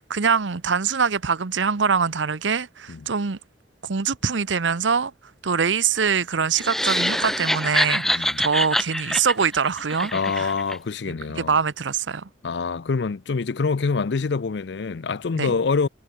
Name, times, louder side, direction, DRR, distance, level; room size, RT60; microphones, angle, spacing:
voice 1, 0.1-3.4 3.8-5.1 5.4-10.5 11.1-12.3 15.4-15.5, right 6 dB, 85° right, 0.9 m, -24 dB
sound 1, 6.5-10.8, equal, ahead, 0.7 m, -25 dB
voice 2, 8.0-8.5 10.1-11.5 12.4-15.9, left 4 dB, 70° left, 0.5 m, -25 dB
head